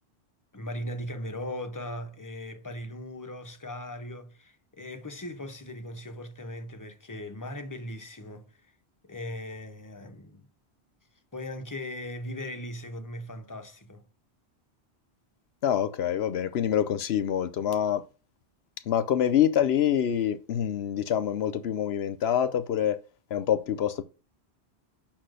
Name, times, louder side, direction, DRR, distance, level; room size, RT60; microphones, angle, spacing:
voice 1, 0.5-8.7 9.1-10.5 11.3-14.0, left 1 dB, 20° left, 0.8 m, -38 dB
voice 2, 15.6-18.0 18.9-23.0 23.3-24.0, left 9 dB, 75° left, 0.9 m, -26 dB
6.0 x 4.3 x 6.3 m
omnidirectional pair, 1.1 m